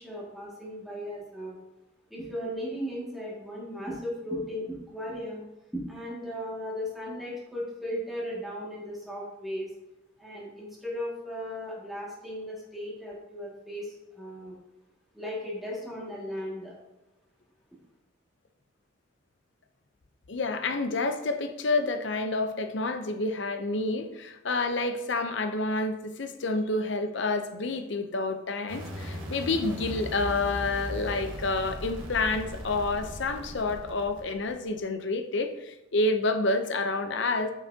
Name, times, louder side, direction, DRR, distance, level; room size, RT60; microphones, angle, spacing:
voice 1, 0.0-1.6 2.1-4.6 4.9-5.4 5.7-9.7 10.2-14.6 15.1-16.7, equal, ahead, -6 dB, 2.0 m, -36 dB
voice 2, 20.3-37.5, left 2 dB, 65° left, 7 dB, 0.7 m, -29 dB
sound 1, 28.7-34.8, equal, 90° right, 1.5 m, -38 dB
8.2 x 5.8 x 2.8 m, 0.97 s
head